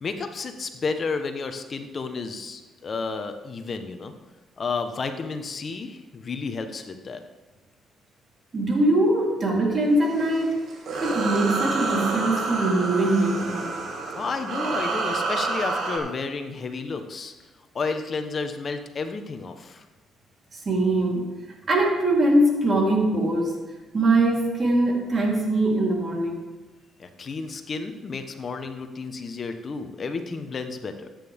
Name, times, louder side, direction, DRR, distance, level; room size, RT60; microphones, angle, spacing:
voice 1, 0.0-4.1 4.6-7.2 14.2-17.3 17.7-19.8 27.0-31.1, left 4 dB, 45° left, 7 dB, 1.2 m, -31 dB
voice 2, 8.5-10.6 11.0-13.7 20.5-21.2 21.7-23.5 23.9-26.4, right 1 dB, 40° right, -2 dB, 3.8 m, -22 dB
sound 1, 10.0-16.0, right 3 dB, 60° right, 2.5 m, -28 dB
14.0 x 9.1 x 3.7 m, 1.2 s
supercardioid pair, 75°, 0 cm